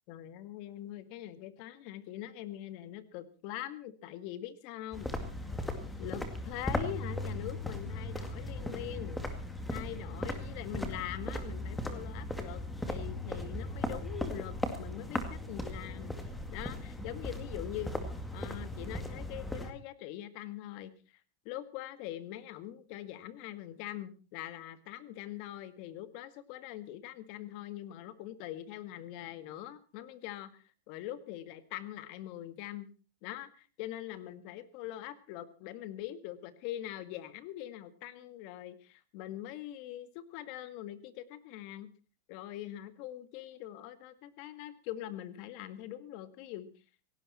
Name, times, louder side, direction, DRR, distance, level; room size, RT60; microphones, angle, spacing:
voice 1, 0.1-5.1 6.0-9.2 9.7-17.9 18.3-20.9 21.5-32.9 33.2-41.9 42.3-46.7, left 13 dB, 45° left, 13 dB, 1.8 m, -43 dB
sound 1, 4.9-19.7, left 1 dB, 5° left, 2.2 m, -37 dB
17.5 x 17.0 x 4.3 m, 0.35 s
supercardioid pair, 160°, 0 cm